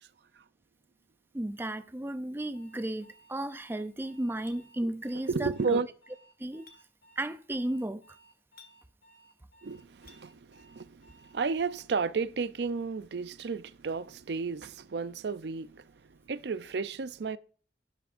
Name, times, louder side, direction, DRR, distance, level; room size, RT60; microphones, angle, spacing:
voice 1, 1.3-5.8 6.4-6.7 7.2-8.0, right 1 dB, 10° right, 0.4 m, -34 dB
Alarm, 2.5-11.9, right 2 dB, 70° left, 6.0 m, -61 dB
Chink clink, 4.5-4.6 6.7-6.8 8.6-8.8 10.1-10.2, left 4 dB, 50° left, 1.7 m, -54 dB
voice 2, 5.3-5.9 9.6-17.4, right 4 dB, 65° right, 0.5 m, -33 dB
12.0 x 11.0 x 2.5 m
head